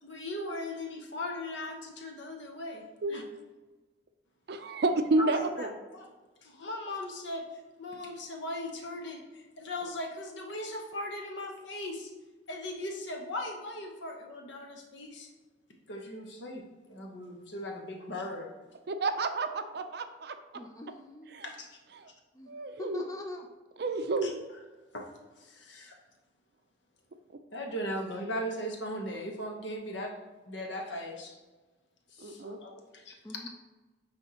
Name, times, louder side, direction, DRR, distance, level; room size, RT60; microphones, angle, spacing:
voice 1, 0.0-2.8 3.1-3.2 5.2-6.1 6.4-7.4 7.8-12.1 12.5-15.3 15.9-18.5 21.4-21.8 24.2-24.3 24.9-25.1 25.4-26.0 27.5-30.1 30.5-31.4 32.1-33.2, left 1 dB, 65° left, 1 dB, 1.0 m, -38 dB
voice 2, 4.5-5.7 18.9-20.3 21.3-21.4 22.0-22.1 22.5-23.0 23.8-24.4 32.2-32.6, right 2 dB, 55° right, 8 dB, 0.5 m, -30 dB
voice 3, 20.5-21.5 22.3-22.5 22.8-23.5 33.2-33.5, left 2 dB, 15° left, 2 dB, 0.4 m, -42 dB
9.6 x 3.5 x 2.9 m, 1.2 s
head